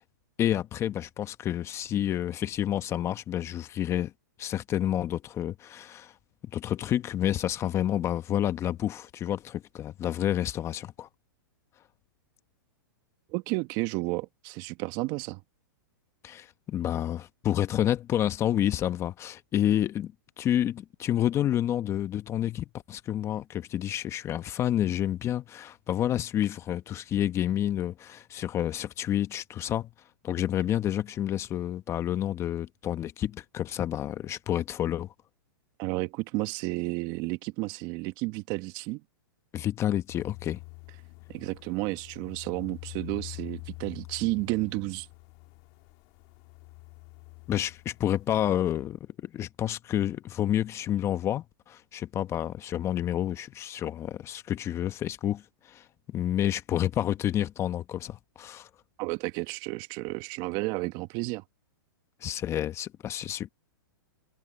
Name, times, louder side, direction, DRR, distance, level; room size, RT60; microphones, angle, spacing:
voice 1, 0.4-4.1 4.4-6.1 6.5-11.1 16.2-20.1 20.4-29.9 30.2-35.1 39.5-40.6 47.5-55.4 55.7-58.7 62.2-63.5, left 11 dB, 25° left, 1.1 m, -29 dB
voice 2, 13.3-15.4 35.8-39.0 41.3-45.1 59.0-61.4, right 22 dB, 40° right, 1.6 m, -32 dB
sound 1, 40.1-48.5, left 27 dB, 40° left, 2.0 m, -46 dB
hypercardioid pair, 135°, 12 cm